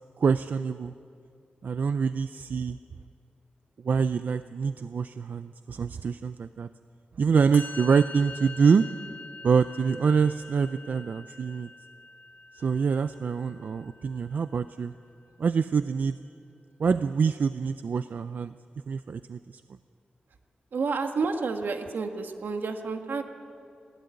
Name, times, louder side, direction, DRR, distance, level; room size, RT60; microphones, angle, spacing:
voice 1, 0.2-0.9 1.6-2.8 3.8-6.7 7.2-8.9 9.4-11.7 12.5-14.9 15.4-16.2 16.8-18.5 18.9-19.6, right 5 dB, 60° right, 12 dB, 0.4 m, -25 dB
Musical instrument, 7.5-14.8, left 3 dB, 65° left, 1.6 m, -45 dB
voice 2, 20.7-23.2, right 4 dB, 75° right, 5 dB, 1.6 m, -30 dB
19.5 x 17.0 x 9.5 m, 2.5 s
wide cardioid pair, 160°, 3 cm